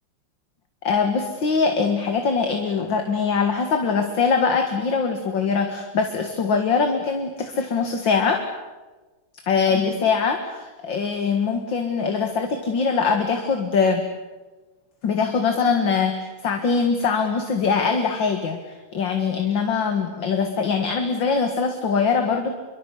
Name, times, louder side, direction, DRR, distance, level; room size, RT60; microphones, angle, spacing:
voice 1, 0.8-8.4 9.5-14.0 15.0-18.6 18.9-22.6, left 5 dB, 60° left, 5 dB, 2.5 m, -22 dB
26.5 x 23.5 x 8.5 m, 1.2 s
omnidirectional pair, 2.4 m